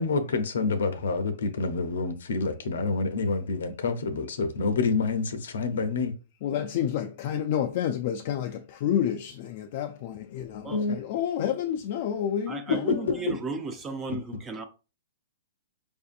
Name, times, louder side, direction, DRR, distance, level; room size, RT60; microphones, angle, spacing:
voice 1, 0.0-6.1 10.7-10.9, left 4 dB, 80° left, 0.6 m, -27 dB
voice 2, 6.4-13.0, left 9 dB, 50° left, 0.3 m, -29 dB
voice 3, 12.5-14.7, right 3 dB, 15° right, 0.5 m, -35 dB
4.9 x 2.6 x 2.5 m
hypercardioid pair, 140°, 0 cm